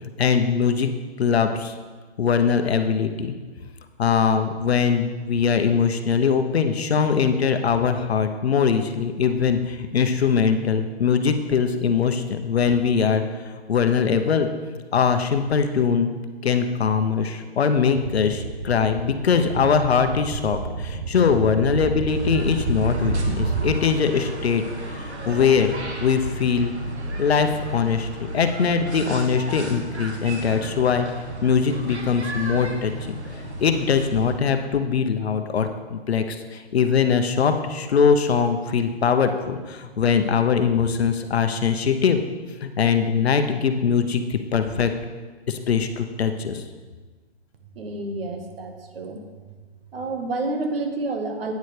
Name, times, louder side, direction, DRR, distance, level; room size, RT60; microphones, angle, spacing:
voice 1, 0.2-0.9 1.2-1.7 2.2-3.3 4.0-13.2 13.7-14.5 14.9-16.1 16.4-24.6 24.9-25.7 26.0-26.7 27.2-31.1 31.4-33.2 33.6-42.2 42.6-44.9 45.5-46.6, left 6 dB, 70° left, 7 dB, 0.9 m, -21 dB
sound 1, 17.9-23.8, right 5 dB, 35° right, 0.5 m, -30 dB
sound 2, 22.1-34.3, right 1 dB, 85° right, 1.6 m, -33 dB
voice 2, 47.7-49.2 49.9-51.5, right 2 dB, 60° right, 5 dB, 1.5 m, -29 dB
9.4 x 8.2 x 3.3 m, 1.4 s
hypercardioid pair, 155°, 33 cm